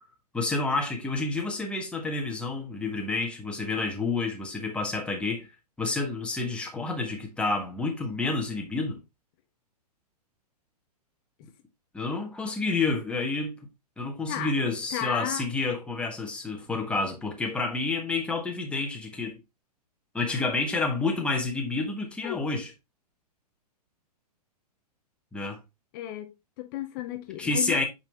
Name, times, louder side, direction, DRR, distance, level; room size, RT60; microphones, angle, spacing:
voice 1, 0.3-5.5 5.8-9.0 11.9-13.5 14.0-19.4 20.1-22.7 25.3-25.6 27.4-27.8, left 3 dB, 5° left, 1.4 m, -29 dB
voice 2, 14.9-15.5 22.2-22.4 25.9-27.8, left 12 dB, 35° left, 0.7 m, -34 dB
8.8 x 4.2 x 3.3 m
figure-of-eight pair, 110°, 21 cm